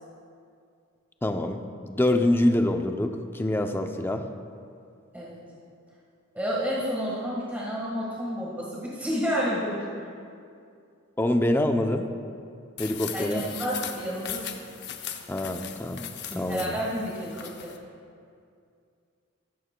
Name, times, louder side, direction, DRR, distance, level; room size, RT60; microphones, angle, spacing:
voice 1, 1.2-4.3 11.2-12.1 12.8-13.5 15.3-16.0 16.3-16.8, left 1 dB, 10° left, 6 dB, 0.5 m, -25 dB
voice 2, 6.3-9.8 13.1-14.6 16.3-17.7, equal, 10° right, -6 dB, 1.4 m, -30 dB
sound 1, 12.8-17.8, left 8 dB, 55° left, 0.7 m, -38 dB
14.0 x 12.5 x 2.2 m, 2.4 s
head